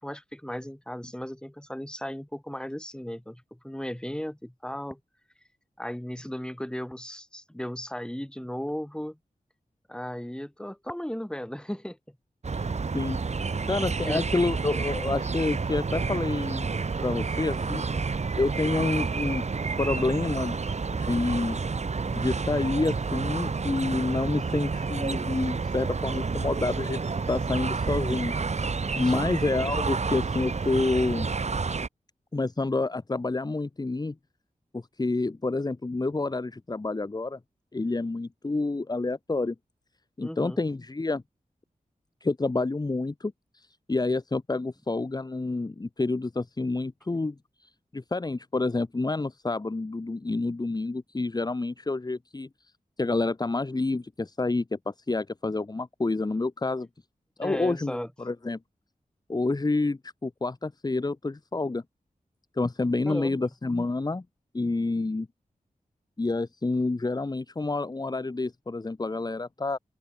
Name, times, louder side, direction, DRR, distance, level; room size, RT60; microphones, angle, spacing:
voice 1, 0.0-5.0 5.8-9.2 9.9-12.0 12.5-12.7 14.1-14.2 29.0-29.3 40.2-40.6 57.4-58.1 63.1-63.5, equal, 5° left, 3.9 m, -36 dB
sound 1, 12.4-31.9, right 4 dB, 50° right, 1.2 m, -30 dB
voice 2, 13.7-16.7 17.0-17.8 18.4-19.4 19.8-20.6 21.0-21.6 22.1-27.0 27.3-28.3 29.0-31.3 32.3-34.1 34.7-37.4 37.7-39.5 40.2-41.2 42.2-47.3 47.6-52.5 53.0-56.9 57.4-58.6 59.3-61.8 62.6-64.2 64.5-65.3 66.2-69.8, left 3 dB, 30° left, 1.0 m, -28 dB
open air
wide cardioid pair, 70°, 14 cm